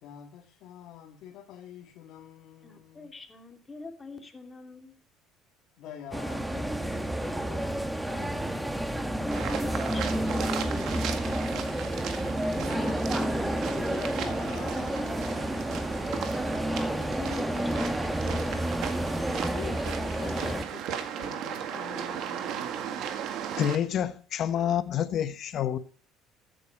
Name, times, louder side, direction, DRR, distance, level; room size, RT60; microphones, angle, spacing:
voice 1, 0.0-3.1 5.8-8.9 12.6-15.7 19.5-22.7, left 9 dB, 65° left, 1.8 m, -46 dB
voice 2, 2.6-4.9 8.8-10.8 11.0-11.8 16.1-18.8, left 4 dB, 20° left, 2.6 m, -44 dB
sound 1, 6.1-20.6, right 1 dB, 5° right, 1.4 m, -30 dB
sound 2, 9.3-23.8, right 8 dB, 65° right, 1.9 m, -37 dB
voice 3, 23.6-25.8, left 10 dB, 50° left, 1.1 m, -28 dB
14.0 x 9.3 x 4.7 m
supercardioid pair, 105°, 0 cm